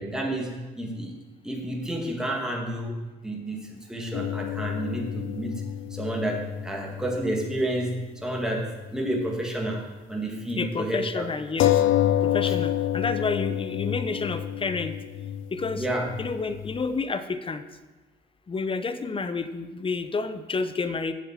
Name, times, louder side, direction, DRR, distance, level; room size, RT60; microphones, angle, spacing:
voice 1, 0.0-11.3 12.5-12.6 15.8-16.1, right 1 dB, 5° right, 0 dB, 1.8 m, -30 dB
sound 1, 4.1-8.0 8.3-8.4 11.6-16.8, left 12 dB, 80° left, 0.5 m, -28 dB
voice 2, 10.6-11.8 12.2-15.0 15.5-15.8 16.2-17.6 18.5-21.1, left 4 dB, 25° left, 11 dB, 0.8 m, -30 dB
7.5 x 7.2 x 7.4 m, 1.2 s
cardioid pair, 90°, 20 cm